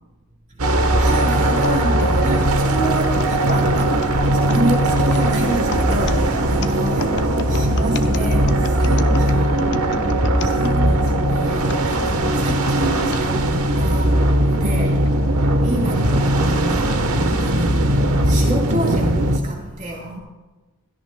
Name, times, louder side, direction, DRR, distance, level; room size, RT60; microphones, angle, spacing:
sound 1, 0.6-19.4, right 1 dB, 80° right, 1.1 m, -19 dB
voice 1, 1.0-4.0 4.3-9.8 10.4-13.4 13.8-14.1 14.5-14.9 15.6-16.9 17.4-17.9 18.3-20.0, right 1 dB, 35° right, -1 dB, 3.5 m, -28 dB
sound 2, 1.6-11.2 11.7-13.3 13.9-14.0 14.9-15.1, left 4 dB, 50° left, 0.7 m, -34 dB
voice 2, 8.8-9.5 9.9-10.3 15.2-15.3 17.1-17.4 19.6-20.2, equal, 55° right, -3 dB, 4.9 m, -35 dB
16.5 x 16.0 x 2.2 m, 1.2 s
head